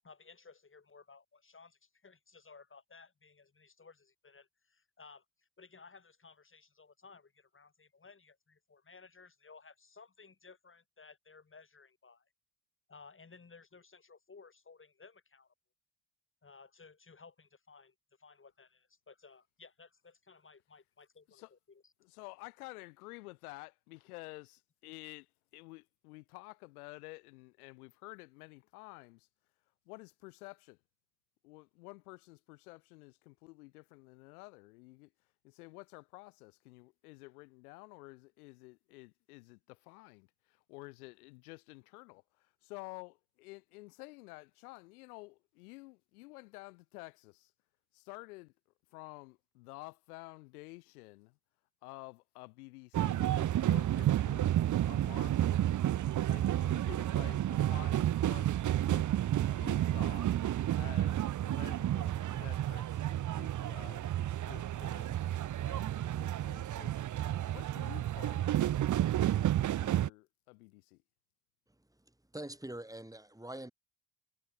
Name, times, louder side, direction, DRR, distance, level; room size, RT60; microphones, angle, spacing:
voice 1, 0.0-12.3 12.9-15.5 16.4-21.9, left 4 dB, 30° left, 6.1 m, -58 dB
voice 2, 22.0-25.3 25.5-29.3 29.9-30.8 31.4-35.1 35.4-42.2 42.6-47.5 47.9-48.5 48.9-51.4 51.8-55.6 56.2-58.5 58.8-59.1 59.4-60.3 60.8-64.1 64.4-65.2 65.6-69.5 69.8-71.0, left 24 dB, 85° left, 2.8 m, -51 dB
sound 1, 52.9-70.1, right 12 dB, 45° right, 0.8 m, -31 dB
voice 3, 71.8-73.7, right 1 dB, 10° right, 6.4 m, -45 dB
hypercardioid pair, 60°, 43 cm